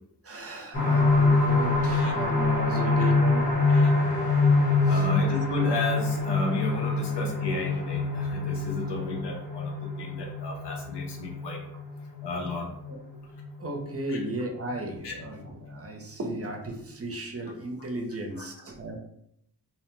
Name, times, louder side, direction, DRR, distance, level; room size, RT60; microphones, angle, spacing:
voice 1, 0.2-3.9 4.9-5.0 12.9-13.0 13.6-19.0, right 2 dB, 35° right, 2 dB, 0.5 m, -35 dB
sound 1, 0.7-14.2 14.7-14.8 15.2-15.3, left 3 dB, 65° left, 1.4 m, -25 dB
voice 2, 4.9-11.6 12.2-12.7 14.1-14.2 15.0-15.1 18.4-18.5, left 3 dB, 90° left, 1 dB, 0.7 m, -33 dB
2.7 x 2.1 x 3.0 m, 0.75 s
wide cardioid pair, 75°, 40 cm